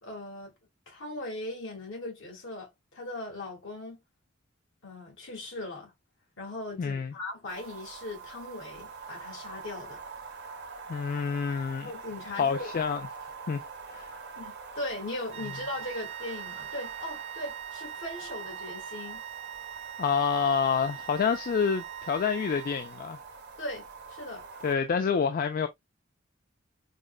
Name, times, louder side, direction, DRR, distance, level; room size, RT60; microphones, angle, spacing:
voice 1, 0.0-0.5 0.9-4.0 4.8-5.9 6.4-10.0 11.8-12.7 14.4-19.2 23.6-24.4, left 2 dB, 70° left, 1.6 m, -39 dB
voice 2, 6.8-7.1 10.9-11.9 12.4-13.0 13.5-13.6 13.9-14.1 20.0-23.2 24.6-25.7, left 6 dB, 45° left, 0.3 m, -27 dB
sound 1, 7.5-24.7, right 5 dB, 55° right, 0.7 m, -45 dB
sound 2, 15.3-23.2, right 12 dB, 30° right, 0.4 m, -42 dB
4.9 x 2.2 x 2.3 m
head